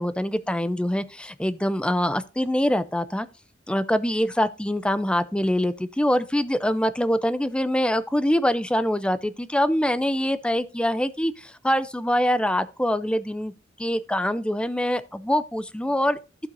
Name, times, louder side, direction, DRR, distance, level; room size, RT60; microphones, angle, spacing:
voice 1, 0.0-3.3 3.7-13.5 13.8-16.2, equal, 5° left, 0.5 m, -24 dB
15.5 x 5.6 x 2.6 m
head